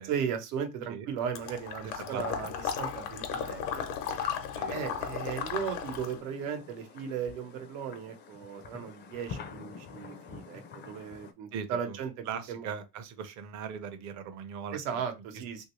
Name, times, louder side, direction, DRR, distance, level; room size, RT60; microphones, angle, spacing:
voice 1, 0.1-3.8 4.7-12.7 14.7-15.7, right 7 dB, 80° right, 1.0 m, -36 dB
Water / Liquid, 1.4-6.2, left 8 dB, 90° left, 0.9 m, -35 dB
voice 2, 2.0-2.3 4.6-4.8 11.5-12.0 12.3-15.0 15.3-15.7, right 7 dB, 45° right, 0.7 m, -40 dB
sound 1, 3.5-11.3, left 6 dB, 25° left, 0.4 m, -48 dB
3.0 x 2.7 x 3.1 m
supercardioid pair, 130°, 42 cm